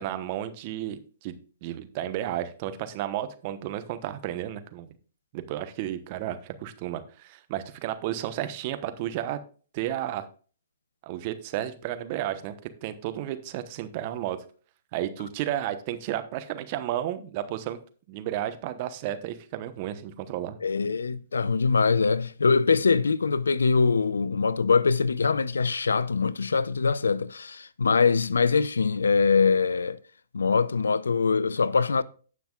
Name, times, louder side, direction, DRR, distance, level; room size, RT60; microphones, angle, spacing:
voice 1, 0.0-1.4 1.6-4.9 5.3-9.4 9.7-10.3 11.1-12.5 12.8-14.4 14.9-17.8 18.1-20.6, right 12 dB, 40° right, 1.0 m, -32 dB
voice 2, 20.6-30.0 30.3-32.0, left 5 dB, 85° left, 0.5 m, -23 dB
17.5 x 5.9 x 2.4 m
hypercardioid pair, 125°, 0 cm